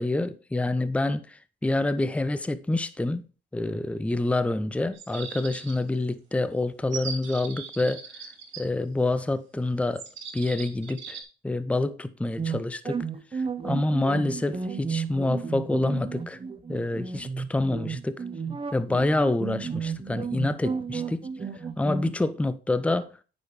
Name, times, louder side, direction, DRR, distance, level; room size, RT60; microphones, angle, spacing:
voice 1, 0.0-3.3 3.5-8.0 8.6-10.0 10.3-11.2 11.4-13.0 13.3-16.4 16.7-18.2 18.7-21.3 21.8-23.1, left 2 dB, 5° left, 0.6 m, -27 dB
sound 1, 4.9-6.0 6.9-8.6 9.9-11.2, right 6 dB, 70° right, 3.0 m, -39 dB
sound 2, 12.4-22.1, right 5 dB, 25° right, 0.8 m, -33 dB
8.9 x 6.1 x 3.2 m
cardioid pair, 90°, 20 cm